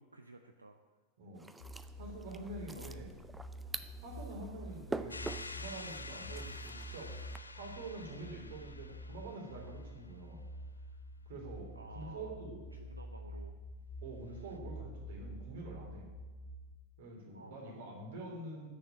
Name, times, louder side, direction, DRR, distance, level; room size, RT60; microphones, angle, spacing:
voice 1, 0.0-1.0 2.7-3.0 11.7-12.3 12.7-13.6 17.3-17.8, right 2 dB, 80° right, 6 dB, 0.6 m, -54 dB
sound 1, 1.3-7.4, right 3 dB, 10° right, 0.5 m, -46 dB
sound 2, 1.6-16.7, equal, 65° left, 2.9 m, -48 dB
voice 2, 2.0-3.1 4.0-7.2 7.5-10.4 11.2-12.6 14.0-16.1 17.0-18.7, right 2 dB, 55° right, 1 dB, 3.0 m, -46 dB
sound 3, 5.1-9.9, left 3 dB, 80° left, 0.5 m, -48 dB
10.0 x 6.7 x 8.7 m, 1.3 s
figure-of-eight pair, 90°, 0 cm